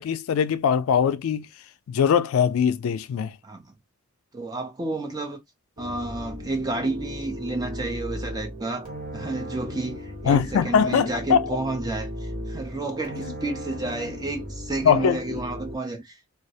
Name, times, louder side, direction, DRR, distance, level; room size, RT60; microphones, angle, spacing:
voice 1, 0.0-1.5 1.9-3.3 10.2-11.5 14.8-15.4, left 7 dB, 70° left, 0.3 m, -21 dB
voice 2, 4.3-5.4 5.8-16.3, right 2 dB, 20° right, 0.4 m, -31 dB
sound 1, 5.8-15.8, equal, 45° right, 1.0 m, -36 dB
2.3 x 2.0 x 2.6 m
head